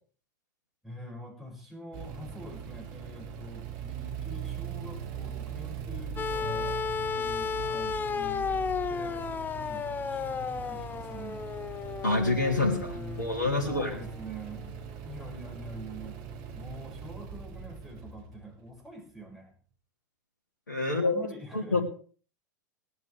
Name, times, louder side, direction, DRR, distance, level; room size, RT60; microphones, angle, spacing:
voice 1, 0.8-8.6 8.9-9.3 9.5-9.9 10.1-11.4 12.6-16.2 16.5-19.5 20.9-21.8, right 1 dB, ahead, -3 dB, 6.2 m, -45 dB
sound 1, 1.9-19.1, right 7 dB, 45° right, 1.9 m, -41 dB
sound 2, 6.2-14.3 15.5-15.6, left 6 dB, 20° left, 0.7 m, -34 dB
voice 2, 12.0-14.0 20.7-21.2 21.5-21.8, left 2 dB, 75° left, 0 dB, 2.8 m, -27 dB
19.5 x 11.0 x 3.5 m, 0.42 s
figure-of-eight pair, 85°, 10 cm